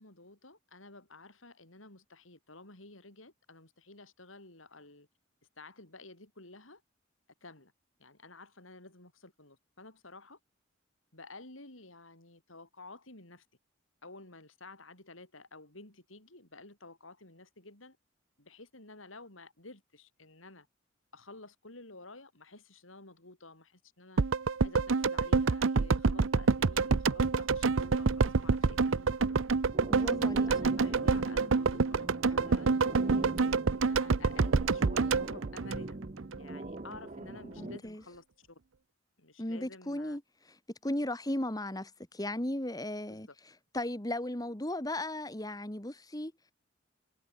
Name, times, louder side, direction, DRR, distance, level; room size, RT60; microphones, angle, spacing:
voice 1, 0.0-5.1 5.6-6.8 7.4-7.7 8.0-10.4 11.1-13.4 14.0-18.0 18.4-20.7 21.1-24.2 24.6-29.4 30.3-33.1 33.7-36.0 36.4-38.6 39.2-40.2 43.1-43.3, left 2 dB, 85° left, 6.5 m, -52 dB
sound 1, 24.2-36.4 36.6-36.7, right 4 dB, 80° right, 0.7 m, -27 dB
sound 2, 29.7-37.8, right 2 dB, 35° right, 0.9 m, -43 dB
voice 2, 29.9-30.5 37.6-38.0 39.4-40.2 40.8-43.3 43.7-46.3, left 1 dB, 20° left, 1.9 m, -36 dB
head